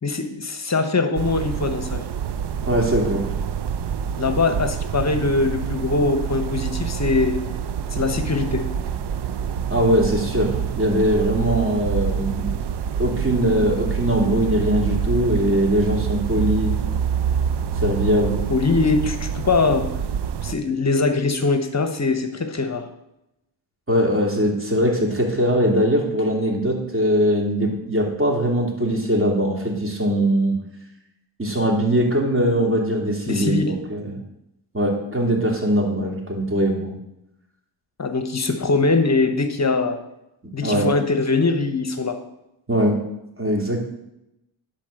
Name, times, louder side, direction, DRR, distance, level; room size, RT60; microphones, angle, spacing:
voice 1, 0.0-2.1 4.2-7.4 7.9-8.7 18.5-19.9 20.4-22.8 33.3-33.7 38.0-40.0 40.5-42.2, left 3 dB, 30° left, 8 dB, 1.2 m, -22 dB
sound 1, 1.1-20.5, right 7 dB, 55° right, 0.7 m, -26 dB
voice 2, 2.7-3.2 9.7-12.6 13.0-16.7 17.8-18.4 23.9-30.6 31.4-34.2 34.7-36.9 40.6-40.9 42.7-43.0 43.4-43.8, equal, 25° right, 0 dB, 2.9 m, -21 dB
10.5 x 4.4 x 6.6 m, 0.87 s
supercardioid pair, 60°, 50 cm